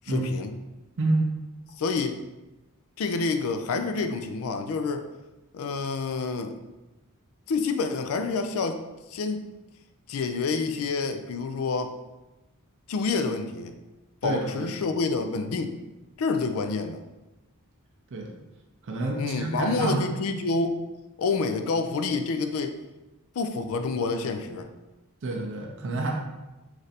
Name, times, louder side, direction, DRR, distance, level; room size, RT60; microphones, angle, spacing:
voice 1, 0.1-0.5 1.8-2.2 3.0-5.1 5.5-6.5 7.5-8.8 9.1-9.4 10.1-11.9 12.9-13.7 14.2-15.7 16.2-17.0 19.2-20.8 21.2-22.8 23.4-24.7, left 4 dB, 65° left, 8 dB, 0.4 m, -28 dB
voice 2, 1.0-1.3 14.2-14.7 18.1-18.3 18.8-20.0 25.2-26.1, right 2 dB, 55° right, 0 dB, 0.5 m, -28 dB
3.2 x 2.5 x 4.1 m, 1.1 s
head